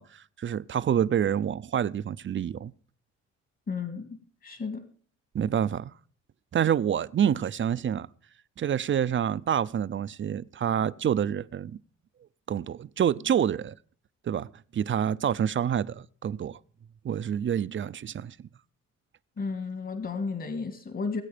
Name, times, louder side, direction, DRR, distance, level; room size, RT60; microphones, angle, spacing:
voice 1, 0.0-2.7 5.3-5.9 6.5-8.1 8.6-11.8 12.5-13.7 14.2-16.6 17.0-18.4, right 9 dB, 40° right, 0.6 m, -27 dB
voice 2, 3.7-4.9 19.4-21.2, left 4 dB, 45° left, 2.1 m, -33 dB
19.5 x 8.3 x 5.0 m
cardioid pair, 90°, 30 cm